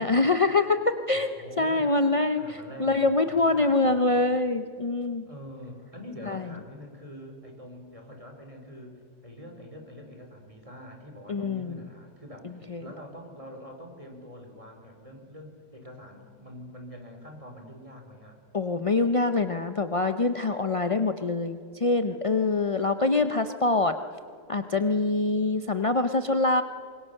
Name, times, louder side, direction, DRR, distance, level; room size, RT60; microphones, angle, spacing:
voice 1, 0.0-5.3 6.3-6.4 11.3-11.9 12.7-12.9 18.5-24.0 24.5-26.6, left 3 dB, 50° left, 8 dB, 0.4 m, -25 dB
voice 2, 1.1-1.9 2.3-4.3 5.3-18.4, equal, 20° right, 3 dB, 3.9 m, -45 dB
26.0 x 22.0 x 6.6 m, 2.3 s
omnidirectional pair, 1.8 m